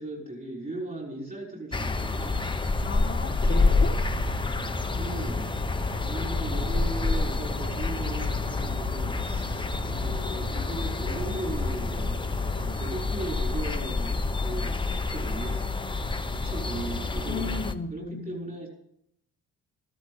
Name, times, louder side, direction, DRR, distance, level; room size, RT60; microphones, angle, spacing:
voice 1, 0.0-2.4 5.0-5.5 6.0-18.7, right 2 dB, 30° right, 5.9 m, -38 dB
sound 1, 1.7-17.7, left 3 dB, 15° left, 1.1 m, -28 dB
voice 2, 2.8-4.0 17.3-18.4, left 4 dB, 35° left, 1.5 m, -35 dB
sound 2, 3.6-13.3, right 2 dB, 85° right, 4.2 m, -40 dB
14.5 x 13.0 x 6.5 m
cardioid pair, 90°, 30 cm